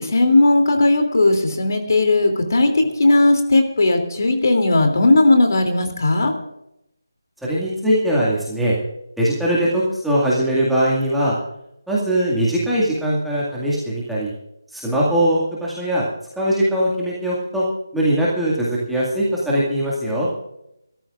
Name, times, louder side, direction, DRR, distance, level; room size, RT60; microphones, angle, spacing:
voice 1, 0.0-6.3, left 2 dB, 55° left, 4 dB, 2.9 m, -16 dB
voice 2, 7.4-8.8 9.2-11.4 11.9-14.3 14.7-16.1 16.4-17.6 17.9-20.3, right 1 dB, ahead, -8 dB, 2.1 m, -20 dB
29.0 x 13.5 x 2.5 m, 0.81 s
figure-of-eight pair, 170°, 2 cm